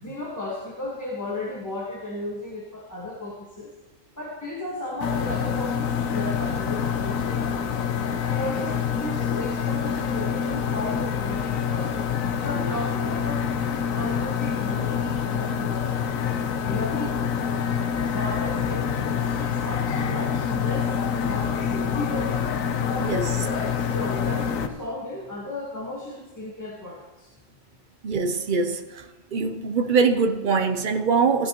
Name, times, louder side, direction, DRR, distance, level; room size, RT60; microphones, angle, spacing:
voice 1, 0.0-3.7 4.1-7.8 8.2-13.5 13.9-16.0 16.7-17.2 18.1-22.4 22.8-27.3, left 1 dB, 15° left, 1.4 m, -34 dB
sound 1, 5.0-24.7, left 7 dB, 85° left, 1.2 m, -26 dB
voice 2, 28.0-29.1 29.3-31.5, right 5 dB, 50° right, 0.7 m, -23 dB
15.5 x 11.5 x 3.0 m
omnidirectional pair, 1.4 m